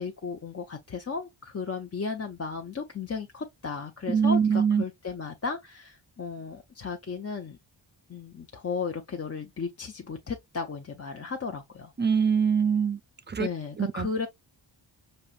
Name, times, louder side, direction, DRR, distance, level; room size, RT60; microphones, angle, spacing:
voice 1, 0.0-7.6 8.1-11.9 13.4-14.3, left 5 dB, 30° left, 0.6 m, -35 dB
voice 2, 4.1-4.8 12.0-13.0 13.3-13.5 13.8-14.1, right 6 dB, 25° right, 0.4 m, -23 dB
5.5 x 2.7 x 2.4 m
cardioid pair, 75°, 48 cm